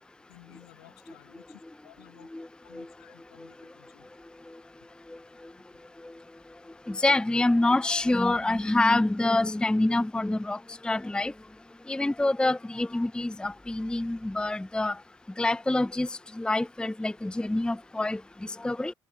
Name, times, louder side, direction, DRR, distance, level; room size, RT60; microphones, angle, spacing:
voice 1, 0.3-2.3 2.6-4.1, left 23 dB, 80° left, 6.6 m, -55 dB
voice 2, 6.9-11.3 11.9-15.0 15.4-18.9, left 2 dB, 5° left, 0.6 m, -26 dB
hypercardioid pair, 50°, 13 cm